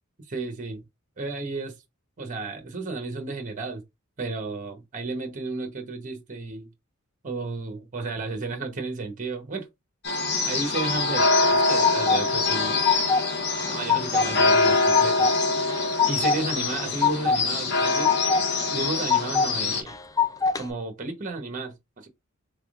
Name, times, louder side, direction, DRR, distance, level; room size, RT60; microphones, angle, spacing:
voice 1, 0.3-0.8 1.2-1.8 2.2-3.8 4.2-6.7 7.2-9.7 10.4-13.0 13.7-15.3 16.1-18.1 18.7-20.0 20.6-22.1, right 3 dB, 35° right, 0.8 m, -33 dB
sound 1, 10.0-19.8, left 3 dB, 50° left, 0.8 m, -24 dB
sound 2, 11.2-12.2 12.6-13.3 13.6-14.3 14.6-15.3 15.7-16.4 16.7-17.4 17.8-18.4 18.8-19.5 19.9-20.6, left 6 dB, 15° left, 0.3 m, -23 dB
3.5 x 3.4 x 2.3 m
head